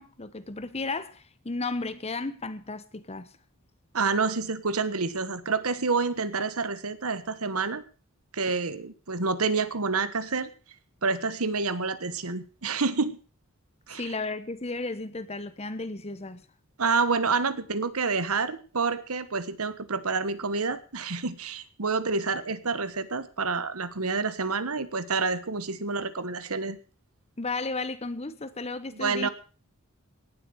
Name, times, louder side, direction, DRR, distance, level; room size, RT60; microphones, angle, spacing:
voice 1, 0.0-3.3 13.9-16.4 27.4-29.3, left 3 dB, 30° left, 1.0 m, -34 dB
voice 2, 3.9-7.8 8.3-10.5 11.0-13.2 13.9-14.1 16.8-26.8 28.9-29.3, right 4 dB, 85° right, 1.3 m, -28 dB
18.0 x 7.9 x 6.3 m
head